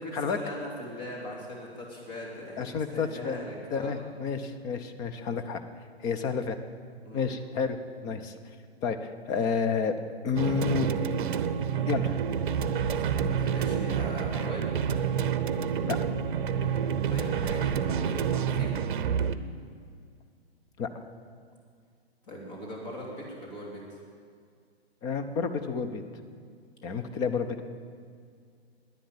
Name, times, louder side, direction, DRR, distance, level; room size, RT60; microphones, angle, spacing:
voice 1, 0.0-3.9 7.0-7.3 13.0-14.7 16.6-18.8 22.2-24.0, equal, 40° left, -2 dB, 3.1 m, -40 dB
voice 2, 2.6-3.4 3.7-5.6 6.0-6.6 7.1-7.8 8.0-8.3 8.8-10.0 10.2-10.9 11.9-12.2 15.8-16.0 20.8-21.0 25.0-26.0 26.8-27.6, left 5 dB, 10° left, 8 dB, 0.4 m, -30 dB
sound 1, 10.3-19.3, right 7 dB, 50° right, 0.7 m, -28 dB
11.5 x 10.5 x 8.8 m, 2.2 s
figure-of-eight pair, 115°, 32 cm